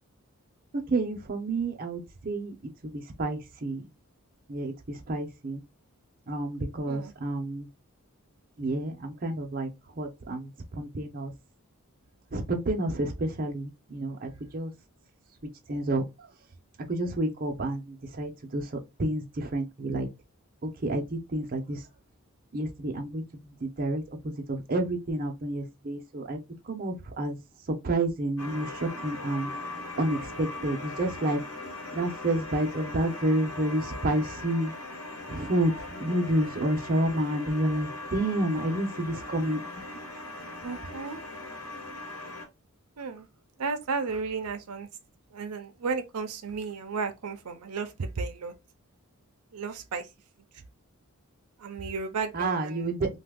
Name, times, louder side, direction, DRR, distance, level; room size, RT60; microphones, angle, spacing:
voice 1, 0.7-2.5 2.8-3.9 4.5-5.6 6.3-7.7 8.6-9.7 10.0-11.3 12.3-14.7 15.7-16.0 16.9-18.7 19.0-20.1 20.6-21.8 22.5-26.4 26.6-27.4 27.8-29.5 30.0-31.4 31.9-34.7 35.3-39.6 52.3-53.1, right 1 dB, 40° right, 0.6 m, -29 dB
sound 1, 28.4-42.5, left 2 dB, 70° left, 1.1 m, -40 dB
voice 2, 40.6-41.2 43.0-43.3 43.6-44.9 45.3-48.5 49.5-50.1 51.6-52.9, right 4 dB, 85° right, 0.5 m, -33 dB
2.7 x 2.3 x 3.4 m
head